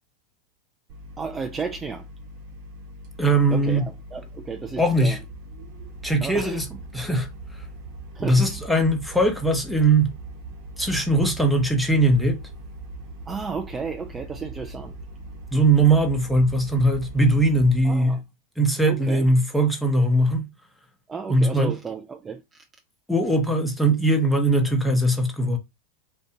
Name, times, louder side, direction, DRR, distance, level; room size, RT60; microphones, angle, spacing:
sound 1, 0.9-17.8, right 2 dB, 55° right, 0.9 m, -40 dB
voice 1, 1.2-2.1 3.5-5.2 6.2-6.8 8.1-8.6 13.3-15.0 17.8-18.2 18.9-19.3 21.1-22.6, right 5 dB, 20° right, 0.3 m, -33 dB
voice 2, 3.2-3.8 4.8-5.2 6.0-6.6 6.9-7.3 8.2-10.1 10.8-12.4 15.5-18.2 18.6-20.5 21.3-21.7 23.1-25.6, right 1 dB, ahead, 0.8 m, -20 dB
2.5 x 2.2 x 2.8 m
hypercardioid pair, 90°, 0 cm